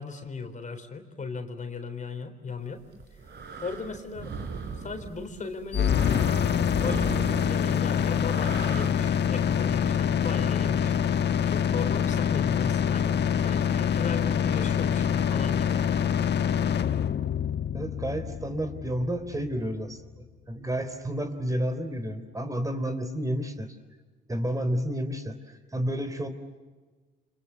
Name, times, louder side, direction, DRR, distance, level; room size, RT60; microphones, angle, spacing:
voice 1, 0.0-2.8 3.6-4.3 4.8-6.2 6.8-11.0 11.4-16.0, left 4 dB, 40° left, 7 dB, 3.9 m, -36 dB
sound 1, 2.8-8.9, right 5 dB, 60° right, 4.7 m, -39 dB
sound 2, 5.7-19.7, left 8 dB, 60° left, 1.4 m, -25 dB
voice 2, 17.7-23.7 24.3-25.4 25.7-26.3, equal, 15° right, 8 dB, 3.5 m, -30 dB
29.5 x 26.0 x 7.3 m, 1.4 s
cardioid pair, 90°, 20 cm